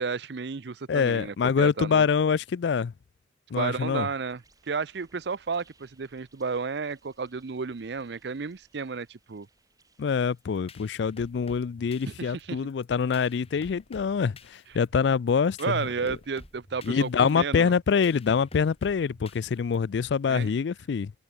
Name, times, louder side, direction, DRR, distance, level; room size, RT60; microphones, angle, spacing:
voice 1, 0.0-2.1 3.5-9.5 12.1-12.6 15.6-17.7 20.3-20.5, right 5 dB, 70° right, 0.6 m, -32 dB
voice 2, 0.9-2.9 3.5-4.1 10.0-15.9 16.8-21.1, left 6 dB, 75° left, 0.4 m, -25 dB
sound 1, 4.3-11.3, right 3 dB, 20° right, 4.6 m, -64 dB
sound 2, 10.4-20.1, left 2 dB, 35° left, 5.0 m, -51 dB
head